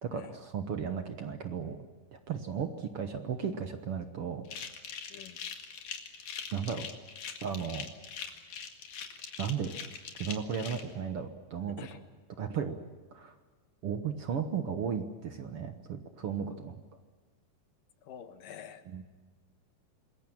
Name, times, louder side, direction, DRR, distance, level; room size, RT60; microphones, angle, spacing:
voice 1, 0.0-1.8 2.1-4.4 6.5-6.9 7.4-7.9 9.4-9.7 10.1-12.0 12.4-12.8 13.1-13.3 13.8-16.8 18.9-19.1, right 7 dB, 60° right, 7 dB, 1.7 m, -35 dB
sound 1, 4.5-10.8, left 7 dB, 70° left, 3.5 m, -42 dB
voice 2, 18.1-18.8, left 9 dB, 85° left, 8 dB, 3.1 m, -47 dB
26.5 x 21.0 x 7.4 m, 1.4 s
omnidirectional pair, 3.8 m